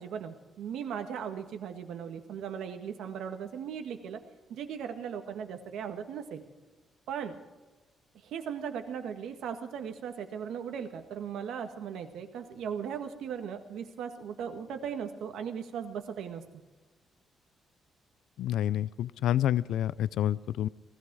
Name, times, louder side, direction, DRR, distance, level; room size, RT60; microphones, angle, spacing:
voice 1, 0.0-4.2 4.5-6.4 7.1-7.4 8.1-16.5, right 7 dB, 80° right, 7 dB, 1.7 m, -38 dB
voice 2, 18.4-20.7, left 11 dB, 85° left, 18 dB, 0.4 m, -28 dB
18.5 x 15.0 x 4.8 m, 1.2 s
cardioid pair, 175°, 0 cm